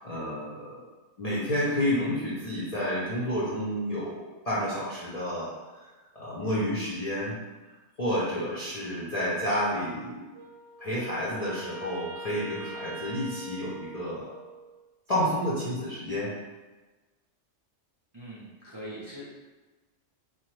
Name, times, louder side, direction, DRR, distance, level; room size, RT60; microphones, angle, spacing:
voice 1, 0.0-0.8 1.2-5.5 6.1-7.4 8.0-10.3 10.8-14.4 15.1-16.3, equal, 50° left, -8 dB, 0.4 m, -30 dB
Wind instrument woodwind instrument, 10.3-14.7, right 2 dB, 85° right, 0.9 m, -43 dB
voice 2, 18.1-19.3, equal, 40° right, -9 dB, 0.3 m, -42 dB
3.0 x 2.0 x 3.1 m, 1.2 s
omnidirectional pair, 1.3 m